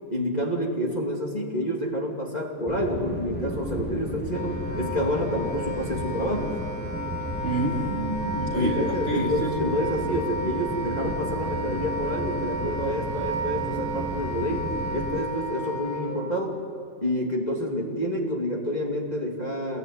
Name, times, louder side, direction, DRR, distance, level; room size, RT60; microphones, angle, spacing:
voice 1, 0.1-6.6 8.5-16.6 17.0-19.8, equal, 20° left, -1 dB, 2.7 m, -28 dB
sound 1, 2.7-15.2, equal, 5° left, 2.0 m, -33 dB
Wind instrument woodwind instrument, 4.2-16.2, right 1 dB, 75° right, 3.8 m, -33 dB
voice 2, 7.4-9.7, right 2 dB, 30° right, -1 dB, 3.1 m, -29 dB
27.0 x 22.0 x 9.5 m, 2.5 s
omnidirectional pair, 2.0 m